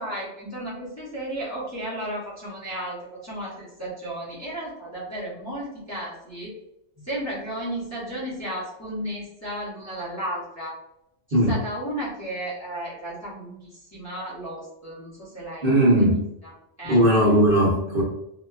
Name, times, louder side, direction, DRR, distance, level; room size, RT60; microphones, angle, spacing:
voice 1, 0.0-6.6 7.0-10.7 11.3-16.0 16.4-16.5 16.8-17.0, right 1 dB, 15° left, -9 dB, 0.8 m, -34 dB
voice 2, 15.6-16.2 16.9-18.0, right 1 dB, 55° right, -6 dB, 1.1 m, -18 dB
2.7 x 2.2 x 2.3 m, 0.83 s
omnidirectional pair, 1.2 m